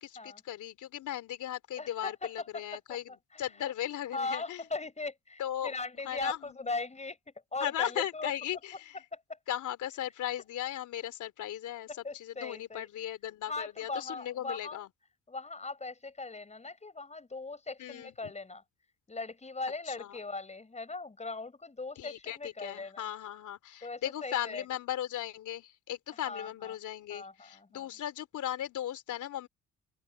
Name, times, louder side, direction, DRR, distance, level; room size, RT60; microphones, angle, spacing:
voice 1, 0.0-3.1 3.4-4.6 5.4-5.7 6.1-6.4 7.6-9.0 9.5-11.9 12.2-14.9 17.8-18.3 19.9-20.1 22.0-29.5, left 11 dB, 75° left, 3.3 m, -37 dB
voice 2, 1.8-3.7 4.1-7.2 7.5-8.3 9.1-9.4 11.9-12.9 13.5-14.9 15.3-18.6 19.1-23.0 23.8-24.7 26.1-26.8 27.1-28.0, left 3 dB, 20° left, 6.0 m, -39 dB
open air
cardioid pair, 90°, 30 cm